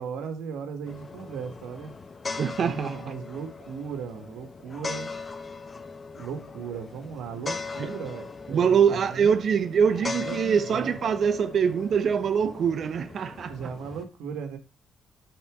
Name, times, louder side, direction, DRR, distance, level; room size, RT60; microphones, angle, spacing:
voice 1, 0.0-1.9 2.6-5.1 6.2-9.4 9.7-11.0 13.5-14.6, right 6 dB, 90° right, 1.5 m, -37 dB
sound 1, 0.8-14.0, left 4 dB, 30° left, 1.0 m, -39 dB
voice 2, 2.4-2.9 7.8-7.9 8.5-13.5, right 7 dB, 55° right, 0.7 m, -24 dB
12.0 x 4.1 x 3.5 m
cardioid pair, 90°, 0 cm